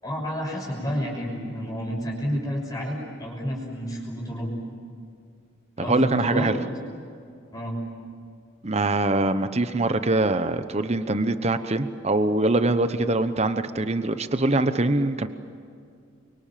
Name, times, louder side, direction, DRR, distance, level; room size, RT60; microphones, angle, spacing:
voice 1, 0.0-4.5 5.8-6.5 7.5-7.8, equal, 20° left, -2 dB, 6.1 m, -30 dB
voice 2, 5.8-6.6 8.6-15.3, right 2 dB, 30° right, 10 dB, 1.0 m, -23 dB
30.0 x 24.0 x 7.6 m, 2.4 s
head